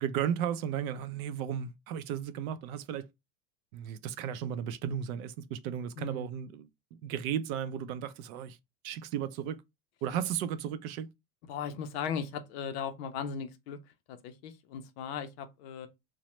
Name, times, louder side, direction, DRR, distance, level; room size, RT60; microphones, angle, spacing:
voice 1, 0.0-3.1 3.7-8.6 8.8-9.6 10.0-11.1, right 9 dB, 70° right, 0.5 m, -35 dB
voice 2, 6.0-6.3 11.5-13.8 14.1-15.9, left 7 dB, 50° left, 0.5 m, -37 dB
3.0 x 2.1 x 3.0 m
supercardioid pair, 170°, 44 cm